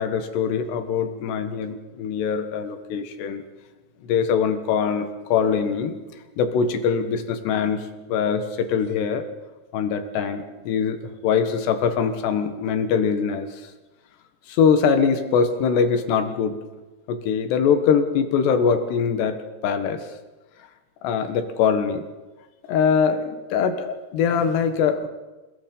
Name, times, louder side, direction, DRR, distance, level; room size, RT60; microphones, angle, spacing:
voice 1, 0.0-3.4 4.0-6.0 6.4-9.2 9.7-13.6 14.5-16.6 17.1-19.4 19.6-20.1 21.0-22.1 22.7-25.1, left 6 dB, 70° left, 7 dB, 3.6 m, -22 dB
29.5 x 18.5 x 5.5 m, 1.2 s
omnidirectional pair, 5.2 m